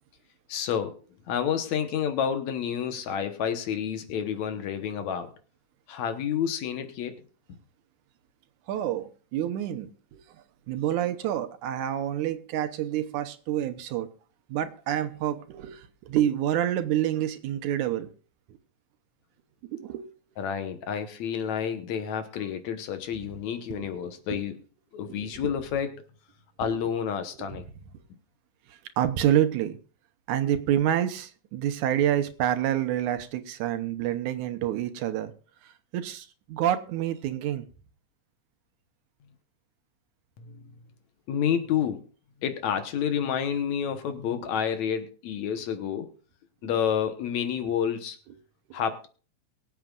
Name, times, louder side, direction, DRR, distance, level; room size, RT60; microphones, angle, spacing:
voice 1, 0.5-1.0 1.3-5.3 5.9-7.2 20.4-24.6 24.9-25.9 26.6-27.6 40.4-40.6 41.3-42.0 42.4-46.1 46.6-48.2 48.7-49.1, left 8 dB, 70° left, 8 dB, 2.4 m, -29 dB
voice 2, 8.7-10.2 10.7-14.1 14.5-18.1 19.7-20.1 23.8-24.0 25.1-25.5 26.6-26.8 27.4-27.6 28.7-29.8 30.3-35.3 35.6-37.7 46.6-46.7, right 11 dB, 80° right, 9 dB, 2.3 m, -28 dB
23.0 x 8.1 x 2.5 m, 0.39 s
omnidirectional pair, 3.5 m